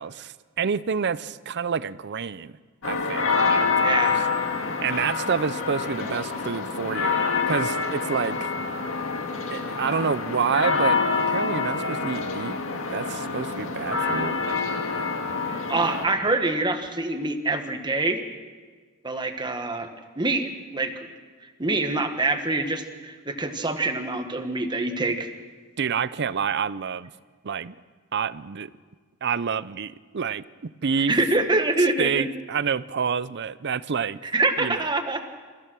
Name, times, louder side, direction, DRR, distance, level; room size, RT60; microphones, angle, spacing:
voice 1, 0.0-2.5 2.8-4.0 4.8-7.2 7.5-8.5 9.5-12.6 12.9-14.8 25.8-27.1 27.4-27.7 28.1-28.7 29.2-31.2 32.0-34.2 34.6-34.8, right 6 dB, 50° right, 17 dB, 0.5 m, -28 dB
sound 1, 2.8-16.1, left 4 dB, 60° left, 2.0 m, -26 dB
voice 2, 3.8-4.2 15.5-18.2 19.0-19.9 20.2-21.1 21.4-25.3 31.0-32.2 34.2-35.3, right 2 dB, 20° right, 7 dB, 1.4 m, -25 dB
27.5 x 15.5 x 6.2 m, 1.5 s
head